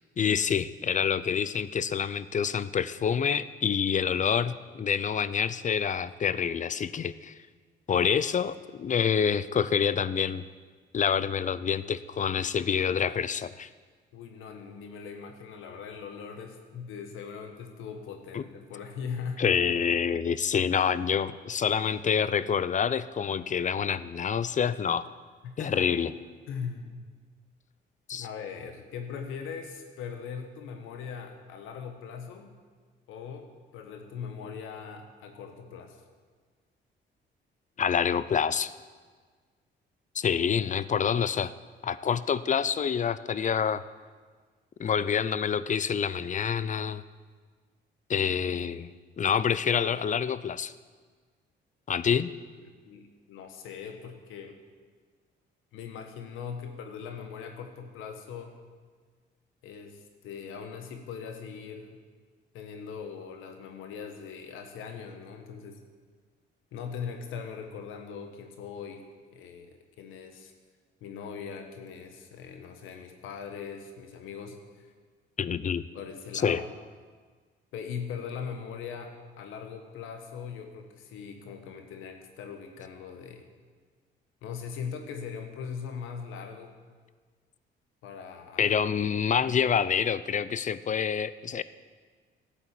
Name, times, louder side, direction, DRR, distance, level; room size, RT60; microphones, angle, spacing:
voice 1, 0.2-7.3 7.9-10.4 10.9-13.7 18.3-18.4 19.4-25.1 25.6-26.1 28.1-28.3 37.8-38.7 40.1-41.5 41.8-43.8 44.8-47.0 48.1-48.9 49.2-50.7 51.9-52.3 75.4-75.9 76.4-76.6 88.6-91.6, left 7 dB, 40° left, 16 dB, 0.6 m, -27 dB
voice 2, 14.1-19.8 25.4-25.9 26.5-27.0 28.1-32.5 33.1-36.0 52.6-54.6 55.7-58.6 59.6-62.0 62.5-65.8 66.7-69.0 69.3-70.5 71.0-74.9 75.9-76.7 77.7-83.5 84.4-86.8 88.0-88.8, left 6 dB, 90° left, 5 dB, 1.4 m, -40 dB
13.0 x 8.9 x 8.3 m, 1.5 s
cardioid pair, 90°, 20 cm